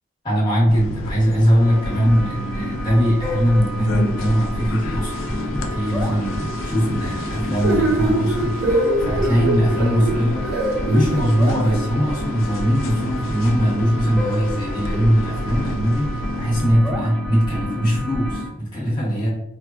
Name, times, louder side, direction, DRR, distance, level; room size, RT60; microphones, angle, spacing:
voice 1, 0.2-10.4 10.9-19.3, equal, 25° left, -6 dB, 1.1 m, -20 dB
sound 1, 0.7-16.7, left 1 dB, 75° left, 0.4 m, -32 dB
sound 2, 1.6-18.4, left 1 dB, 5° left, 0.5 m, -30 dB
sound 3, 7.6-11.8, right 2 dB, 50° right, 0.6 m, -22 dB
3.3 x 2.1 x 2.4 m, 0.86 s
head